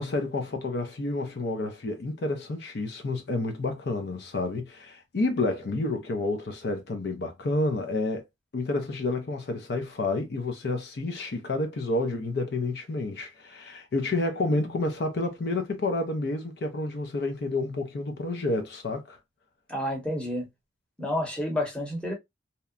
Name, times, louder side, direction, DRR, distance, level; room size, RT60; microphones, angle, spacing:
voice 1, 0.0-8.2 8.5-19.2, left 2 dB, 60° left, 0.5 m, -29 dB
voice 2, 19.7-20.5 21.0-22.1, left 1 dB, 5° left, 0.9 m, -29 dB
2.8 x 2.1 x 2.3 m
head